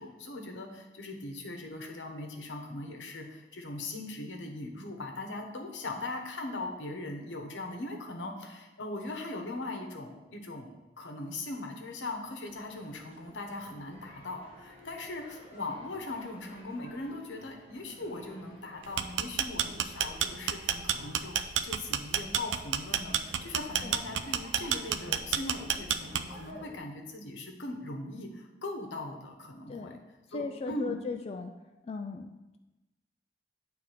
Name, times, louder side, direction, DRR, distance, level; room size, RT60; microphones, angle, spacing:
voice 1, 0.0-29.9 30.3-30.9, left 2 dB, 80° left, 3 dB, 1.0 m, -40 dB
sound 1, 12.4-26.8, equal, 30° right, 1.8 m, -52 dB
sound 2, 18.8-26.5, right 9 dB, 80° right, 0.4 m, -29 dB
voice 2, 29.7-30.0 30.3-31.5 31.8-32.6, left 4 dB, 35° left, 4 dB, 0.3 m, -38 dB
9.0 x 3.5 x 4.9 m, 1.0 s
head